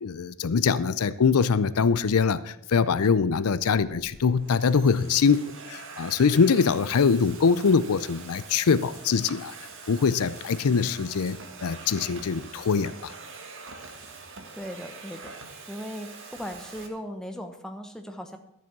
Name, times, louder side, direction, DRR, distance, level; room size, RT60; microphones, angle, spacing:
voice 1, 0.0-9.5 9.9-13.1, left 5 dB, 80° left, 15 dB, 0.5 m, -23 dB
sound 1, 2.7-2.8 3.7-11.5, equal, 20° right, 4.8 m, -56 dB
Domestic sounds home sounds, 3.0-3.4 4.2-16.9, right 4 dB, 60° right, 1.7 m, -44 dB
voice 2, 14.5-15.4 15.7-18.4, equal, 5° left, 4 dB, 1.1 m, -38 dB
12.5 x 7.5 x 6.0 m, 0.84 s
head